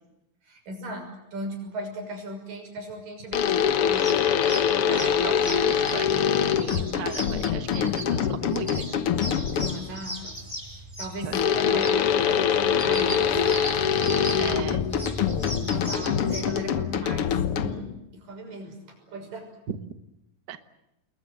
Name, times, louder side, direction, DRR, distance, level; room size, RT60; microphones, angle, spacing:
voice 1, 0.4-4.3 9.4-10.4 10.7-13.7 14.3-19.5, right 1 dB, 70° right, 4 dB, 7.9 m, -38 dB
rhythm balls, 3.3-9.9 11.3-18.0, left 8 dB, 65° left, 1.5 m, -24 dB
sound 1, 3.9-16.4, equal, 5° right, 6.4 m, -37 dB
voice 2, 4.8-9.0 11.2-11.4 11.7-11.8 14.4-14.8 19.7-19.9 20.5-20.7, right 7 dB, 50° right, 10 dB, 1.3 m, -37 dB
29.0 x 22.0 x 7.7 m, 0.87 s
omnidirectional pair, 4.0 m